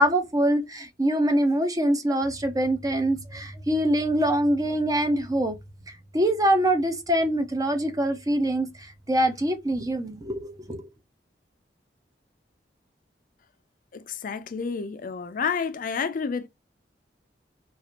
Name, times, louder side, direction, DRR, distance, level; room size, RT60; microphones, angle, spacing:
voice 1, 0.0-5.5 6.1-10.9, right 1 dB, 20° right, 0.6 m, -24 dB
voice 2, 13.9-16.5, left 5 dB, 50° left, 0.4 m, -30 dB
4.0 x 2.5 x 2.9 m
head